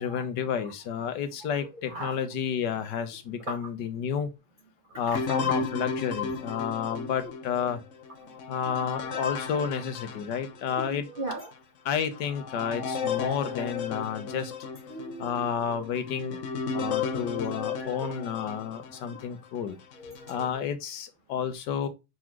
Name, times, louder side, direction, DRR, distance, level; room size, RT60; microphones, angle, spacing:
voice 1, 0.0-4.3 5.0-7.8 8.5-11.1 11.8-14.5 15.2-16.4 16.7-19.8 20.3-21.9, left 7 dB, 90° left, 1.6 m, -31 dB
voice 2, 1.4-2.2 3.5-3.6 4.9-5.6 6.9-7.1 8.2-8.3 8.7-9.3 10.7-11.5 13.0-13.6 14.9-15.9 17.2-18.2 19.1-19.2 19.6-20.7, right 2 dB, 35° right, 1.1 m, -41 dB
sound 1, 5.1-10.9 11.4-11.5 12.1-19.3 19.9-20.5, left 5 dB, 55° left, 0.9 m, -34 dB
6.1 x 4.0 x 4.6 m
omnidirectional pair, 1.8 m